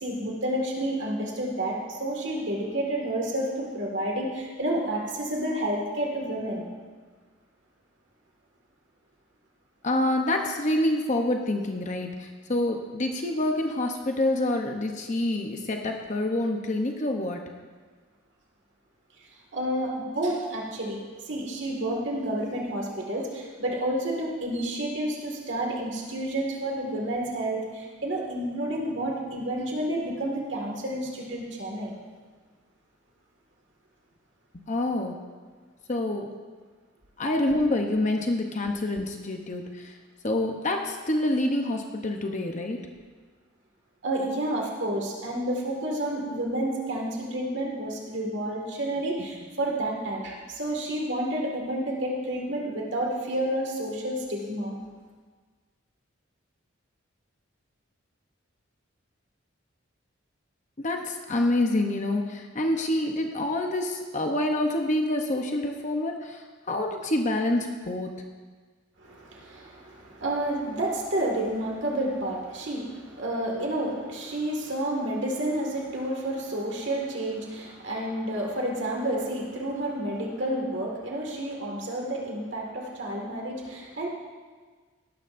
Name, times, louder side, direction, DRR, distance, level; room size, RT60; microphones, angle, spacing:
voice 1, 0.0-6.7 19.5-32.0 44.0-54.8 69.0-84.1, right 1 dB, 60° right, -1 dB, 1.9 m, -30 dB
voice 2, 9.8-17.4 34.7-35.2 35.9-36.3 37.2-39.9 40.2-42.8 60.8-68.1, left 1 dB, 35° left, 3 dB, 0.8 m, -27 dB
17.0 x 12.5 x 2.6 m, 1.5 s
head